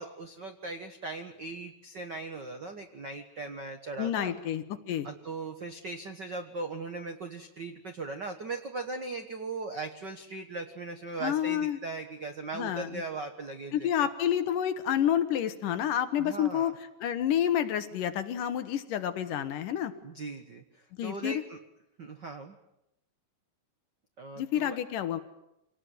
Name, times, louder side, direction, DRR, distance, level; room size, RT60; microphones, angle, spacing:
voice 1, 0.0-4.3 5.0-14.1 16.2-16.7 20.0-21.6 22.0-22.6 24.2-24.8, right 3 dB, 70° right, 6 dB, 1.0 m, -39 dB
voice 2, 4.0-5.1 11.2-11.8 12.5-13.0 13.7-16.7 17.0-19.9 21.0-21.4 24.4-25.2, left 10 dB, 70° left, 11 dB, 2.5 m, -29 dB
26.0 x 19.0 x 9.3 m, 0.87 s
omnidirectional pair, 4.4 m